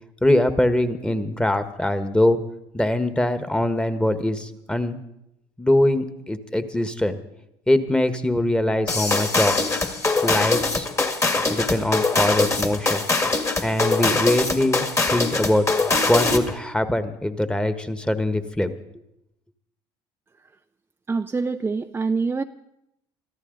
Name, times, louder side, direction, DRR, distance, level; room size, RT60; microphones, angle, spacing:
voice 1, 0.2-2.4 2.7-5.0 5.6-7.2 7.7-9.5 10.2-10.9 11.5-13.0 13.6-15.7 16.1-18.7, left 1 dB, 5° left, 10 dB, 1.4 m, -22 dB
sound 1, 8.9-16.5, left 3 dB, 25° left, 2.0 m, -22 dB
voice 2, 21.1-22.4, right 4 dB, 15° right, 7 dB, 0.5 m, -25 dB
25.0 x 14.0 x 3.9 m, 0.83 s
hypercardioid pair, 70°, 13 cm